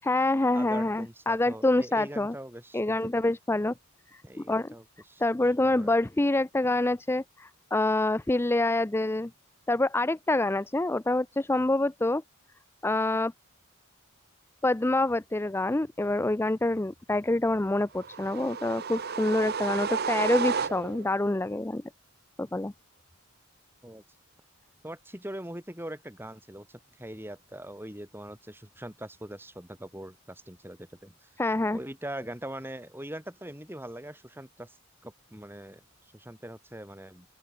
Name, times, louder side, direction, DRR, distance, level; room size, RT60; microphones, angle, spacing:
voice 1, 0.0-2.3 2.7-3.7 4.1-4.7 5.2-9.3 9.7-12.2 12.8-13.3 14.6-21.8 22.4-22.7 31.4-31.8, left 2 dB, 10° left, 0.4 m, -26 dB
voice 2, 0.5-3.1 4.2-5.2 5.6-5.9 23.8-24.0 24.8-31.3 31.7-34.8 35.0-35.8 36.1-37.3, right 1 dB, 10° right, 7.2 m, -42 dB
sound 1, 18.0-21.2, right 6 dB, 45° right, 0.8 m, -32 dB
open air
head